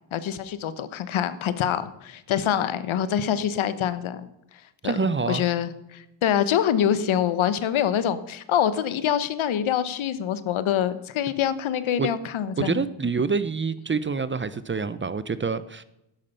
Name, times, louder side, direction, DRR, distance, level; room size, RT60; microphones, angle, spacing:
voice 1, 0.1-4.3 4.8-4.9 5.3-12.8, left 9 dB, 70° left, 13 dB, 1.1 m, -25 dB
voice 2, 4.8-5.5 12.0-12.1 12.6-15.8, right 5 dB, 25° right, 15 dB, 0.6 m, -26 dB
12.5 x 10.5 x 5.5 m, 0.87 s
cardioid pair, 90°, 49 cm